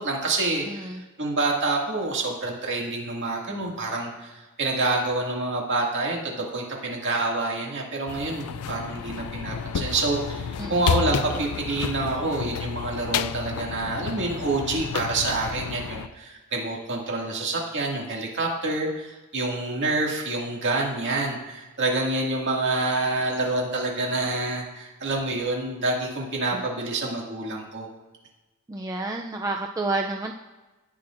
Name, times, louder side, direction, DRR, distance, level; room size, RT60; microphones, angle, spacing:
voice 1, 0.0-0.9 1.2-27.9, right 2 dB, 55° right, -1 dB, 2.1 m, -27 dB
voice 2, 0.7-1.0 10.6-10.9 11.3-11.4 26.5-26.6 28.7-30.3, right 2 dB, 15° right, 2 dB, 0.4 m, -30 dB
sound 1, 8.1-16.1, left 7 dB, 85° left, 0.4 m, -31 dB
18.0 x 6.0 x 2.5 m, 1.2 s
head